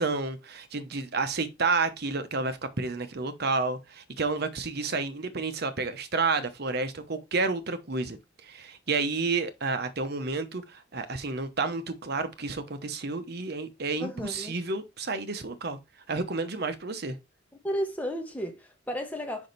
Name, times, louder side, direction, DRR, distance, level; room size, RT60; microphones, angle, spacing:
voice 1, 0.0-15.8 16.1-17.2, right 4 dB, 50° right, 0.9 m, -30 dB
voice 2, 14.0-14.6 17.6-19.5, equal, 10° left, 1.2 m, -33 dB
5.2 x 4.9 x 4.0 m
head